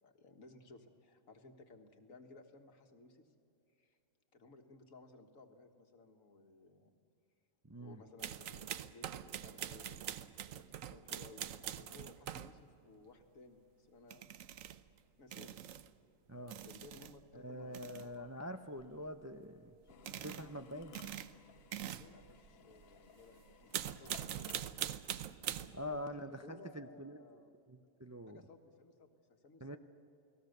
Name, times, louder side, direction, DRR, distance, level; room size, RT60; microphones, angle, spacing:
voice 1, 0.0-3.3 3.8-4.0 4.3-6.9 7.8-10.0 10.3-14.3 15.2-15.7 16.6-18.3 21.9-24.7 25.6-27.5 28.3-29.8, left 3 dB, 90° left, 5 dB, 2.0 m, -59 dB
voice 2, 7.7-8.0 16.3-16.6 17.3-19.8 20.1-21.0 25.7-27.2 27.7-28.4 29.6-29.8, equal, 20° right, 7 dB, 0.4 m, -45 dB
sound 1, 8.2-12.6 14.1-14.9 15.3-15.9 16.5-17.2 17.6-18.2 18.8-19.2 19.9-20.5 20.8-23.1 23.5-26.0, right 10 dB, 85° right, 1.1 m, -44 dB
Drill, 19.9-25.0, left 7 dB, 55° left, 1.0 m, -59 dB
29.5 x 19.5 x 6.7 m, 2.8 s
omnidirectional pair, 1.4 m